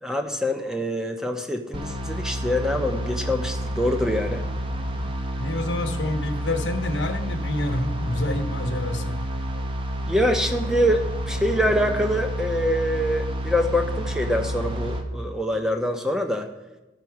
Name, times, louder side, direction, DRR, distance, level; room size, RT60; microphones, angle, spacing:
voice 1, 0.0-4.5 10.1-16.5, equal, 5° right, 5 dB, 0.7 m, -25 dB
sound 1, 1.7-15.0, equal, 30° right, 0.8 m, -29 dB
voice 2, 5.4-9.2, left 1 dB, 75° left, 6 dB, 1.0 m, -28 dB
13.5 x 5.9 x 4.7 m, 1.0 s
head